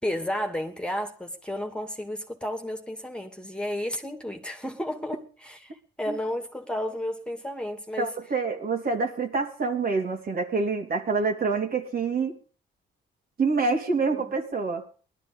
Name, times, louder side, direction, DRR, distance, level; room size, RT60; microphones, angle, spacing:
voice 1, 0.0-8.1, left 1 dB, 5° left, 2.6 m, -32 dB
voice 2, 8.0-12.4 13.4-14.8, right 4 dB, 50° right, 3.4 m, -26 dB
19.0 x 12.5 x 5.3 m
cardioid pair, 90°, 20 cm